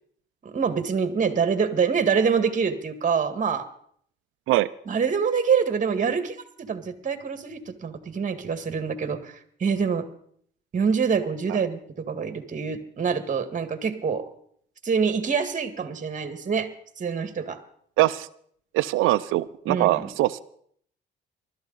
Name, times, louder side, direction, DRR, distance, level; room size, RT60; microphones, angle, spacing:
voice 1, 0.4-3.7 4.9-10.1 10.7-14.2 14.8-16.7 17.0-17.6 19.7-20.1, right 6 dB, 40° right, 10 dB, 1.8 m, -25 dB
voice 2, 18.0-18.3 18.7-20.4, right 16 dB, 90° right, 15 dB, 0.5 m, -22 dB
20.0 x 13.0 x 4.0 m, 0.64 s
cardioid pair, 90°, 20 cm